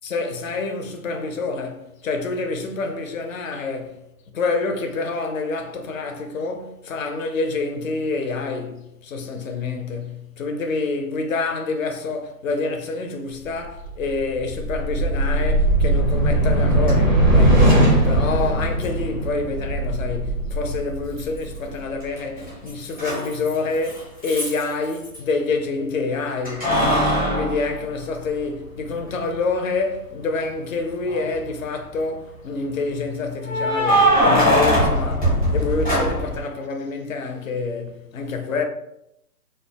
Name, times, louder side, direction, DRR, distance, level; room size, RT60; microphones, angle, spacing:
voice 1, 0.0-4.0 4.3-38.6, left 3 dB, 55° left, 0.5 m, -27 dB
sound 1, 13.6-22.1, right 1 dB, 35° right, 0.4 m, -20 dB
Keys jangling, 16.8-16.9 18.8-18.9 21.2-21.7 22.0-25.2 26.4-28.6 29.1-29.2 30.9-31.5 33.4-36.4, equal, 5° left, 0.6 m, -21 dB
2.3 x 2.1 x 3.3 m
figure-of-eight pair, 140°, 48 cm